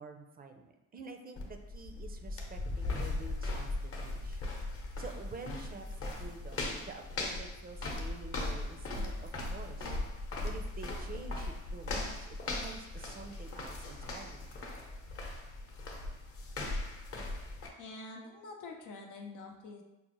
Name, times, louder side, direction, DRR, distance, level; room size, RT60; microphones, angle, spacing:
voice 1, 0.0-4.4 5.0-10.0 10.4-14.5, right 4 dB, 30° right, 4 dB, 0.5 m, -48 dB
sound 1, 1.4-17.7, left 2 dB, 50° left, 0.8 m, -38 dB
voice 2, 17.8-19.8, left 3 dB, 85° left, 1 dB, 0.7 m, -46 dB
5.3 x 2.0 x 3.0 m, 0.96 s
cardioid pair, 90°, 30 cm